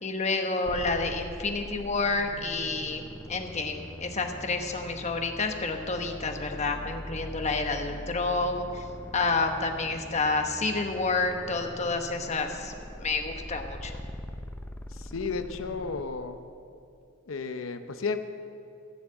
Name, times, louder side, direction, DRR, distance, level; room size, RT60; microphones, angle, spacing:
voice 1, 0.0-8.8 9.1-12.7 13.0-13.9, left 3 dB, 35° left, 4 dB, 1.0 m, -29 dB
sound 1, 0.6-16.0, equal, 10° left, 0.6 m, -42 dB
voice 2, 14.9-16.4 17.3-18.2, left 4 dB, 80° left, 9 dB, 0.7 m, -33 dB
15.5 x 7.2 x 7.6 m, 2.5 s
head